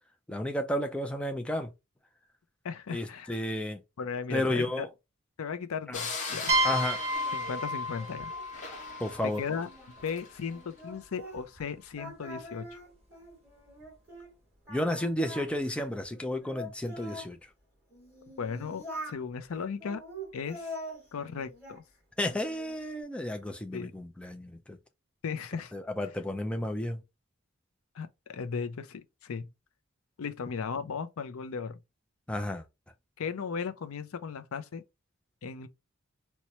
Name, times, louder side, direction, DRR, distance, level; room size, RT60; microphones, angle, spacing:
voice 1, 0.3-1.7 2.9-3.8 4.3-4.9 5.9-6.0 6.6-7.0 9.0-9.4 14.7-17.4 22.2-24.8 25.7-27.0 32.3-32.7, left 1 dB, 5° left, 0.4 m, -32 dB
voice 2, 2.6-3.4 4.0-4.9 5.4-6.5 7.3-8.3 9.4-9.7 10.0-12.8 18.4-20.0 20.3-20.7 21.1-21.8 23.7-23.9 25.2-25.7 27.9-29.5 30.2-31.8 33.2-34.8 35.4-35.7, left 6 dB, 90° left, 0.5 m, -36 dB
sound 1, 5.9-10.4, left 4 dB, 35° left, 0.9 m, -40 dB
sound 2, 6.5-10.1, equal, 30° right, 1.1 m, -31 dB
Singing, 7.1-11.7 11.9-14.3 14.7-17.3 17.9-19.2 19.8-21.8 22.2-22.8, equal, 10° right, 2.3 m, -45 dB
4.2 x 2.2 x 2.9 m
head